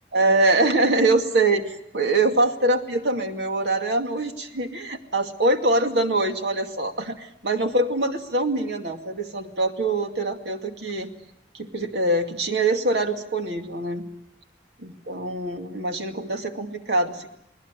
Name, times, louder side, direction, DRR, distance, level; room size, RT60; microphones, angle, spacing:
voice 1, 0.1-11.1 11.5-14.0 14.8-17.3, right 2 dB, 85° right, 5 dB, 2.3 m, -24 dB
29.5 x 20.0 x 8.3 m, 0.80 s
head